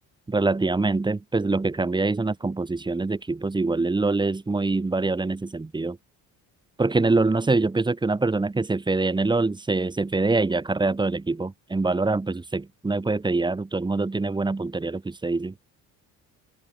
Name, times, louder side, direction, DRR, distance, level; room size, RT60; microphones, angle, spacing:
voice 1, 0.3-6.0 6.8-15.5, right 3 dB, 10° right, 0.9 m, -24 dB
open air
cardioid pair, 95°, 37 cm